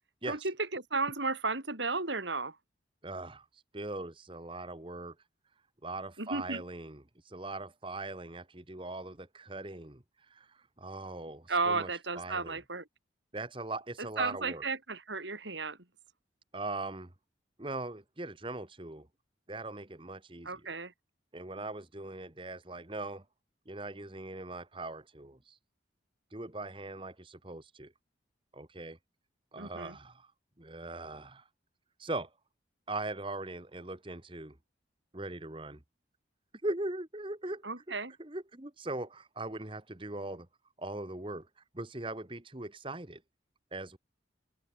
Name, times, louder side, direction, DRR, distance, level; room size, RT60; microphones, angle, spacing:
voice 1, 0.3-2.6 6.2-6.6 11.5-12.8 14.2-15.8 20.5-20.9 29.6-30.0 37.6-38.1, right 3 dB, 75° right, 5.5 m, -33 dB
voice 2, 3.0-5.1 5.8-11.9 12.1-12.6 13.3-14.6 16.5-17.1 17.6-19.1 19.5-20.7 21.3-23.2 23.7-25.6 26.3-27.9 28.5-29.0 29.5-30.3 30.6-31.5 32.0-32.3 32.9-34.6 35.1-35.8 36.6-37.6 38.2-40.5 40.8-43.2 43.7-44.0, right 2 dB, 25° right, 1.5 m, -40 dB
open air
head